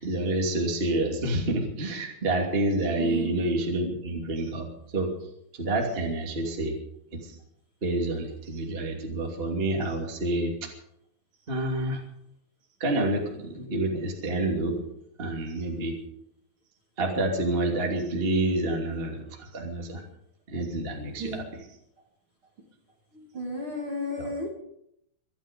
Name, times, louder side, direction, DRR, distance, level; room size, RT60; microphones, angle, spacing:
voice 1, 0.0-4.7 4.9-5.1 5.5-6.7 7.2-7.4 7.8-10.7 11.5-12.0 12.8-14.8 15.2-15.9 17.0-20.0 20.5-21.6 24.2-24.3, right 2 dB, 20° right, 0 dB, 1.5 m, -28 dB
voice 2, 3.0-3.4 21.2-21.4 23.1-24.5, left 1 dB, 35° right, 0 dB, 2.3 m, -33 dB
24.5 x 10.5 x 5.3 m, 0.76 s
omnidirectional pair, 5.7 m